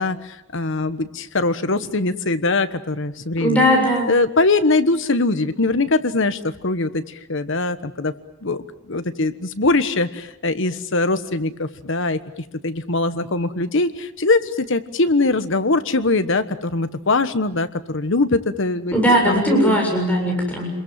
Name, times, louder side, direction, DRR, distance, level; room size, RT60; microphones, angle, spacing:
voice 1, 0.0-3.7 4.1-8.1 8.4-12.2 12.6-19.0 19.2-19.8, left 2 dB, 65° left, 10 dB, 1.3 m, -22 dB
voice 2, 3.4-4.1 18.9-20.7, equal, 10° left, -1 dB, 7.3 m, -18 dB
27.5 x 22.0 x 7.5 m, 0.85 s
head